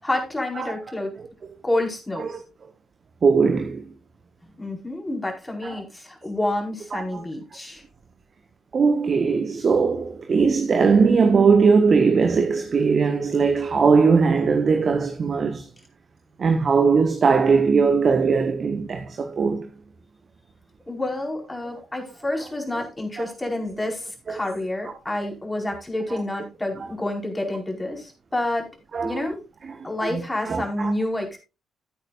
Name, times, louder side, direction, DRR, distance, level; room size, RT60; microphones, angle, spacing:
voice 1, 0.0-1.1 1.6-2.3 4.6-7.8 20.9-28.7 29.0-29.4 29.8-31.4, left 1 dB, 20° left, 4.8 m, -28 dB
voice 2, 3.2-3.8 5.6-5.7 6.9-7.2 8.7-15.7 16.4-19.7 22.7-22.8 23.2-23.3 28.9-29.2 29.7-29.8 30.1-30.2 30.4-30.9, right 5 dB, 45° right, 1.3 m, -20 dB
15.5 x 8.8 x 2.5 m
hypercardioid pair, 45°, 0 cm